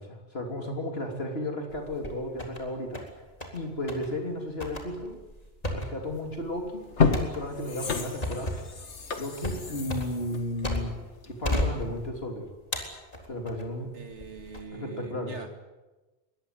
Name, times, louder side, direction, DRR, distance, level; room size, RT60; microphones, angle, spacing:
voice 1, 0.0-3.0 3.5-5.2 5.7-6.8 7.3-8.6 9.2-11.0 11.3-12.5 13.3-13.9 14.7-15.4, left 1 dB, 60° left, 2 dB, 3.4 m, -34 dB
sound 1, 1.7-2.6 2.9-3.6 3.9-4.1 4.6-11.1 11.4-12.3 12.7-13.7 14.2-14.6, left 1 dB, 35° left, 3.9 m, -34 dB
sound 2, 6.2-6.3 6.8-11.5 11.9-12.0, left 5 dB, 85° left, 2.1 m, -30 dB
voice 2, 13.9-15.6, right 4 dB, 85° right, 6 dB, 2.7 m, -43 dB
22.5 x 20.0 x 9.6 m, 1.2 s
omnidirectional pair, 1.2 m